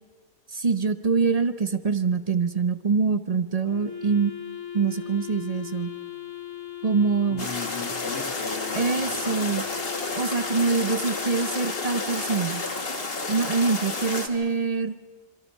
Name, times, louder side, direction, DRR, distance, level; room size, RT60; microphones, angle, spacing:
voice 1, 0.5-4.3 4.7-5.9 6.8-7.5 8.7-9.6 10.2-12.6 13.3-14.9, right 5 dB, 35° right, 11 dB, 0.8 m, -24 dB
Wind instrument woodwind instrument, 3.7-12.9, left 9 dB, 30° left, 1.4 m, -39 dB
voice 2, 7.3-9.7, left 4 dB, 65° left, -2 dB, 2.3 m, -38 dB
sound 1, 7.4-14.3, left 3 dB, 50° left, 2.1 m, -31 dB
27.0 x 23.0 x 5.5 m, 1.5 s
omnidirectional pair, 1.3 m